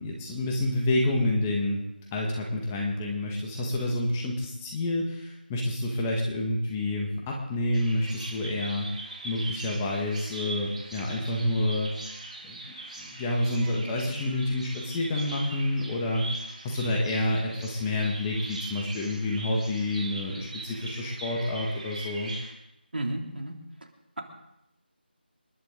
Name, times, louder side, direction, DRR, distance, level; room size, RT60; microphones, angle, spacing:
voice 1, 0.0-1.8 2.1-9.0 9.2-11.9 12.4-22.3, left 1 dB, 15° left, -1 dB, 1.6 m, -28 dB
Bird vocalization bird call bird song, 7.7-22.5, right 2 dB, 45° right, 4.0 m, -41 dB
voice 2, 22.9-23.6, right 1 dB, 65° right, 3 dB, 2.9 m, -32 dB
28.0 x 11.0 x 3.9 m, 0.85 s
figure-of-eight pair, 165°, 6 cm